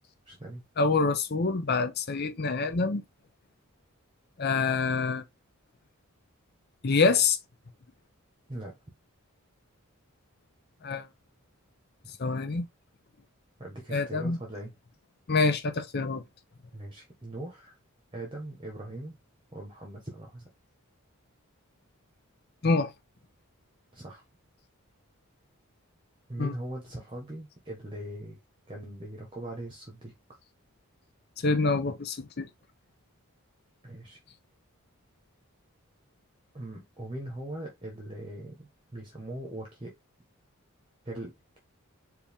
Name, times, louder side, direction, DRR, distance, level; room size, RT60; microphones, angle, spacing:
voice 1, 0.3-0.6 8.5-8.7 12.0-12.1 13.6-14.7 16.7-17.8 18.1-19.2 19.5-20.4 23.9-24.2 26.3-28.4 28.7-30.1 33.8-34.2 36.5-39.9 41.0-41.6, right 1 dB, 20° right, 1.1 m, -40 dB
voice 2, 0.8-3.0 4.4-5.2 6.8-7.4 10.8-11.1 12.2-12.7 13.9-14.4 15.3-16.2 22.6-22.9 26.4-26.5 31.4-32.5, left 4 dB, 45° left, 0.6 m, -26 dB
4.6 x 2.7 x 3.5 m
head